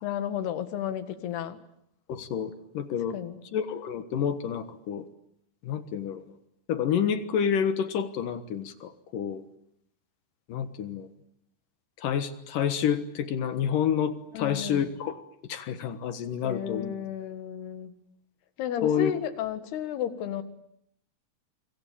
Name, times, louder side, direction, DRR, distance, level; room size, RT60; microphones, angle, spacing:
voice 1, 0.0-1.6 3.1-3.4 14.3-14.9 16.4-17.9 18.6-20.4, left 9 dB, 80° left, 10 dB, 3.8 m, -32 dB
voice 2, 2.1-3.2 3.5-5.0 5.6-6.2 6.7-9.4 10.5-11.1 12.0-15.2 15.5-16.9 18.8-19.1, left 8 dB, 65° left, 11 dB, 2.7 m, -29 dB
28.0 x 24.5 x 8.6 m, 0.74 s
omnidirectional pair, 4.6 m